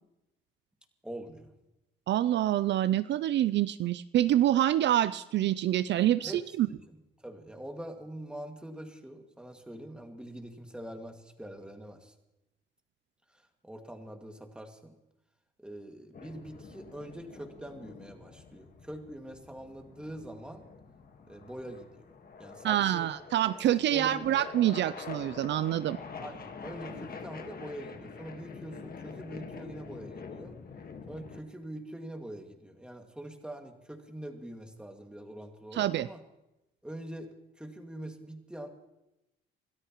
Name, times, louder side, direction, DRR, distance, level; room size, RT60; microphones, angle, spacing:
voice 1, 1.0-1.5 6.2-12.1 13.3-15.0 15.6-20.6 21.3-22.1 22.4-23.1 23.9-24.3 26.2-30.6 31.1-36.2 36.8-38.7, right 1 dB, 5° right, 3 dB, 2.1 m, -44 dB
voice 2, 2.1-6.7 22.6-26.0 35.7-36.1, right 12 dB, 65° right, 15 dB, 0.4 m, -26 dB
sound 1, 16.1-31.4, left 5 dB, 50° left, 1.6 m, -46 dB
27.5 x 13.0 x 3.0 m, 0.92 s
cardioid pair, 90°, 20 cm